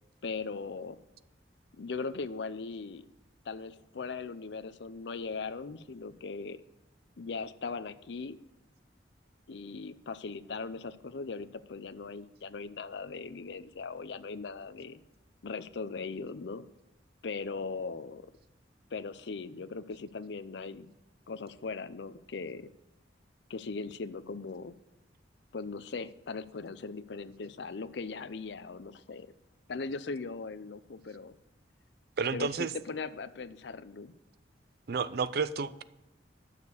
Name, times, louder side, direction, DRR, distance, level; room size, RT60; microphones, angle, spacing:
voice 1, 0.2-1.0 1.8-3.1 3.5-6.6 7.2-8.4 9.5-15.0 15.4-16.7 17.2-18.3 18.9-20.9 21.3-22.7 23.5-24.8 25.5-29.3 29.7-31.4 32.3-34.1, left 4 dB, 65° left, 14 dB, 0.5 m, -39 dB
voice 2, 32.2-32.7 34.9-35.8, right 5 dB, 55° right, 15 dB, 0.5 m, -31 dB
11.0 x 6.7 x 6.8 m, 0.95 s
head